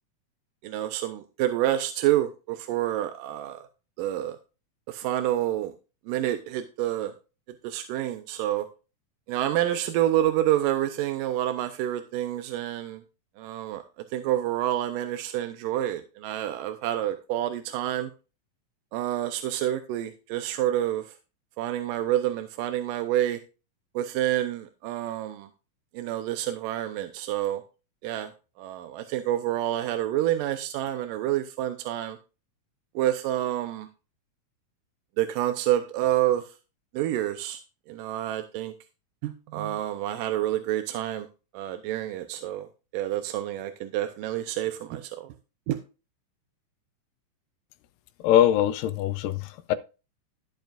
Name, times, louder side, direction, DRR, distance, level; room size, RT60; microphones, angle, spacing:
voice 1, 0.6-3.7 4.0-4.4 4.9-5.7 6.1-7.1 7.6-8.7 9.3-13.0 13.4-13.8 14.1-18.1 18.9-21.0 21.6-23.4 24.0-25.5 25.9-27.6 28.0-28.3 28.6-32.2 33.0-33.9 35.2-36.4 36.9-37.6 37.9-38.7 39.2-41.3 41.5-42.7 42.9-45.3 45.7-45.8, right 13 dB, 80° right, 2.3 m, -28 dB
voice 2, 48.2-49.8, left 11 dB, 80° left, 2.2 m, -22 dB
13.5 x 8.1 x 2.5 m
omnidirectional pair, 4.0 m